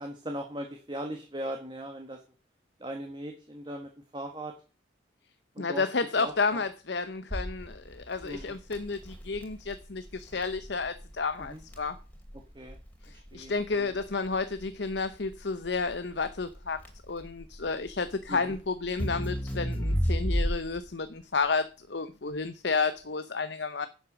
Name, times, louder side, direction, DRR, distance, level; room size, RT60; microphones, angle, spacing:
voice 1, 0.0-2.2 2.8-4.5 5.5-5.9 6.1-6.6 8.2-8.5 11.4-11.6 12.5-12.8 13.1-13.9 18.3-18.6, right 1 dB, 25° right, 1.6 m, -39 dB
voice 2, 5.6-12.0 13.1-16.8 17.1-23.9, left 4 dB, 65° left, 0.8 m, -31 dB
Crackle, 7.3-20.9, equal, 10° left, 2.8 m, -34 dB
11.0 x 8.1 x 6.2 m
head